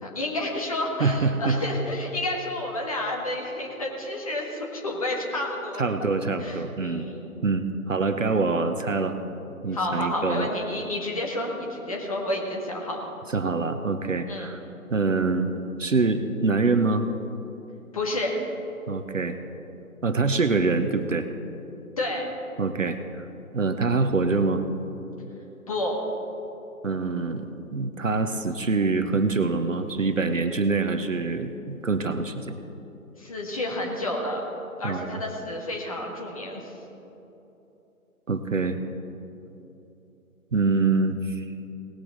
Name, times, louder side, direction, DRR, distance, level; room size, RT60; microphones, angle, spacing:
voice 1, 0.0-5.8 6.4-7.3 9.7-13.0 14.3-14.5 17.9-18.4 22.0-22.3 25.7-26.0 33.2-34.4 34.8-36.7, left 1 dB, 25° left, -1 dB, 1.6 m, -30 dB
voice 2, 1.0-1.6 5.8-7.1 7.4-9.2 9.6-10.5 13.3-14.6 14.9-15.5 15.8-17.1 18.9-19.4 20.0-21.3 22.6-23.2 23.5-24.6 26.8-27.5 27.7-32.5 34.8-35.2 38.3-38.8 40.5-41.4, right 3 dB, 60° right, 8 dB, 0.9 m, -25 dB
19.0 x 8.5 x 4.0 m, 3.0 s
figure-of-eight pair, 150°, 43 cm